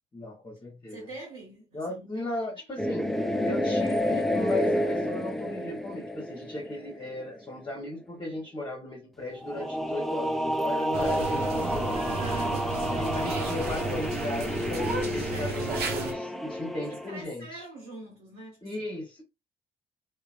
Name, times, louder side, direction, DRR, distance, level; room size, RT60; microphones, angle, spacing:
voice 1, 0.1-1.1 1.7-3.1 3.4-12.0 12.9-17.6 18.6-19.2, left 2 dB, 25° left, 1.1 m, -36 dB
voice 2, 0.9-2.4 11.9-12.8 14.8-15.7 16.9-18.7, right 2 dB, 85° right, 1.0 m, -45 dB
sound 1, 2.8-7.3 9.4-17.2, equal, ahead, 0.5 m, -30 dB
sound 2, 10.9-16.1, right 3 dB, 60° right, 0.9 m, -33 dB
3.0 x 2.3 x 2.5 m
hypercardioid pair, 50°, 18 cm